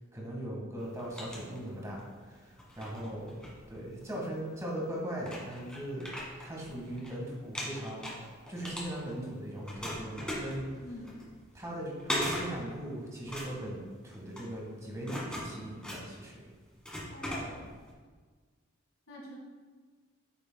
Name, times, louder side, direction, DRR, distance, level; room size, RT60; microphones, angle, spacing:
voice 1, 0.1-3.4 3.7-8.2 8.5-10.7 11.5-16.4, right 1 dB, 15° right, -3 dB, 1.7 m, -39 dB
sound 1, 0.8-2.1 2.5-4.2 4.8-4.9 5.2-7.1 7.4-9.3 9.6-17.9, equal, 5° left, 1.6 m, -39 dB
voice 2, 10.8-11.2 17.1-17.7 19.1-19.4, equal, 70° left, -4 dB, 1.9 m, -45 dB
8.6 x 6.7 x 2.3 m, 1.5 s
head